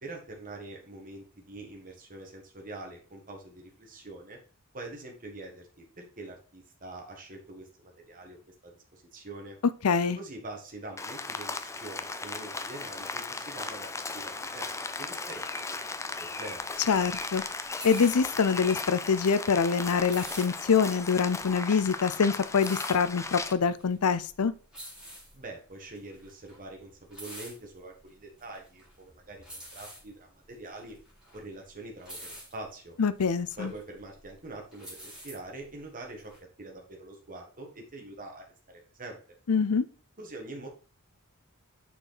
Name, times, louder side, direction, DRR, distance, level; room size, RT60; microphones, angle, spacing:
voice 1, 0.0-4.4 4.7-8.4 8.6-9.6 10.1-15.8 16.2-16.7 25.3-30.9 31.3-33.0 33.6-36.3 36.6-39.2 40.2-40.7, right 2 dB, 40° right, 1.5 m, -44 dB
voice 2, 9.8-10.2 16.9-17.4 17.8-24.5 33.0-33.7 39.5-39.8, left 6 dB, 80° left, 0.6 m, -25 dB
Rain, 11.0-23.5, left 3 dB, 15° left, 0.5 m, -37 dB
sound 1, 16.6-36.4, equal, 5° right, 3.4 m, -48 dB
6.5 x 4.7 x 4.0 m
head